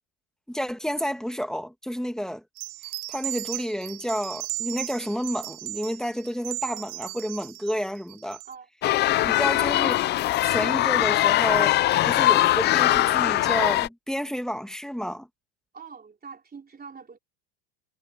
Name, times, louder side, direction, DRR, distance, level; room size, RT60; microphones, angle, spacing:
voice 1, 0.5-2.4 3.1-8.4 9.2-10.1 10.4-11.8 12.0-15.3, equal, ahead, 2.1 m, -30 dB
sound 1, 2.6-8.5, right 27 dB, 65° right, 1.1 m, -36 dB
sound 2, 8.8-13.9, left 15 dB, 25° left, 0.3 m, -21 dB
voice 2, 15.7-17.2, right 5 dB, 20° right, 4.0 m, -44 dB
supercardioid pair, 115°, 47 cm